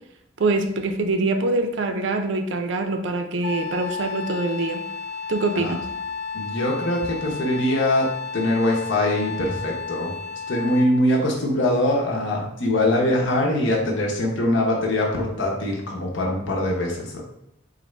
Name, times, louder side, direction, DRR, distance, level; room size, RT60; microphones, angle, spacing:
voice 1, 0.4-4.8 5.3-5.9, right 2 dB, 70° right, 6 dB, 0.4 m, -24 dB
Wind instrument woodwind instrument, 3.4-11.0, left 5 dB, 55° left, 0.3 m, -33 dB
voice 2, 6.3-10.1 10.5-17.2, left 1 dB, 75° left, -1 dB, 0.9 m, -23 dB
4.1 x 2.5 x 3.2 m, 0.79 s
head